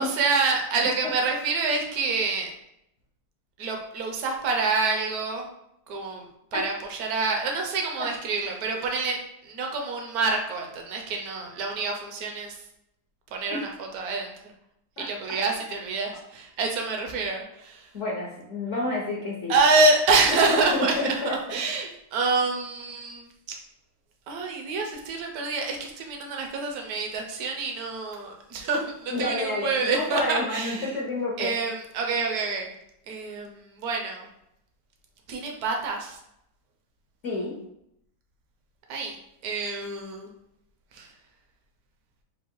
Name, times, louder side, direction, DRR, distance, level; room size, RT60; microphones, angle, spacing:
voice 1, 0.0-2.5 3.6-5.5 5.9-6.2 6.5-9.2 9.4-12.6 13.3-13.7 13.9-14.3 15.0-17.9 19.5-23.6 24.3-31.0 31.4-32.7 33.1-34.3 35.3-36.2 38.9-39.1 39.4-40.3 40.9-41.1, right 3 dB, 65° right, 2 dB, 0.9 m, -27 dB
voice 2, 17.9-19.5 20.5-21.3 29.1-31.6 37.2-37.5, left 2 dB, 75° left, -3 dB, 0.6 m, -29 dB
4.6 x 2.5 x 4.5 m, 0.79 s
omnidirectional pair, 2.4 m